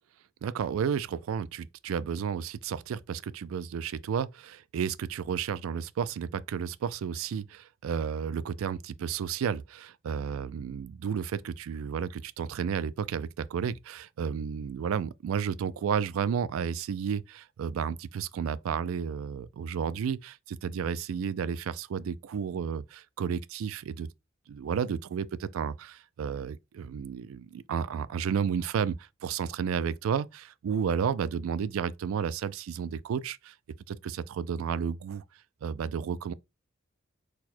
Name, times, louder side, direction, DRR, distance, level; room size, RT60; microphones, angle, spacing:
voice 1, 0.4-24.1 24.5-33.5 33.9-35.2 35.6-36.3, right 7 dB, 90° right, 0.3 m, -32 dB
4.3 x 2.1 x 4.2 m
head